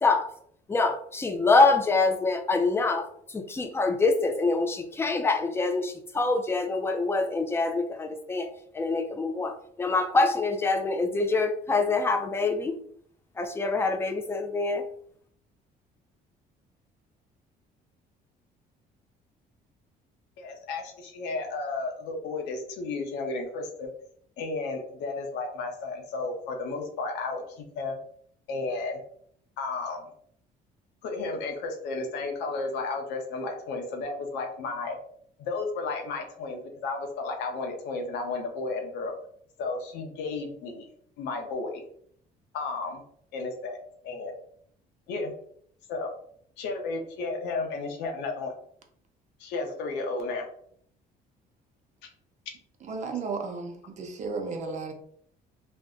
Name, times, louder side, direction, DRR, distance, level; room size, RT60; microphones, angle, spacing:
voice 1, 0.7-8.5 8.7-12.8 13.4-14.9, left 3 dB, 15° left, 6 dB, 0.4 m, -25 dB
voice 2, 20.4-23.9 24.4-28.0 28.5-29.0 29.6-30.1 31.0-35.0 35.4-39.1 39.6-40.9 41.2-41.8 42.5-43.0 43.3-43.8 44.0-44.3 45.1-45.3 45.9-46.1 46.6-48.5 49.4-50.5, left 3 dB, 90° left, 3 dB, 0.8 m, -33 dB
voice 3, 52.8-54.9, right 4 dB, 45° right, 3 dB, 0.7 m, -34 dB
2.6 x 2.1 x 3.7 m, 0.64 s
cardioid pair, 110°, 17 cm